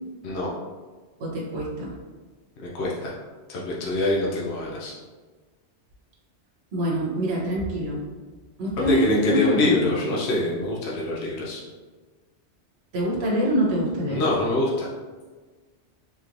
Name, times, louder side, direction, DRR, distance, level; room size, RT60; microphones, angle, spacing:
voice 1, 1.2-1.9 6.7-8.0 8.6-9.7 10.0-10.1 12.9-14.2, equal, 65° right, -4 dB, 1.2 m, -25 dB
voice 2, 2.6-3.1 3.5-4.9 8.8-11.6 14.1-14.9, left 2 dB, 70° left, -4 dB, 0.9 m, -25 dB
3.6 x 3.0 x 2.5 m, 1.4 s
omnidirectional pair, 1.2 m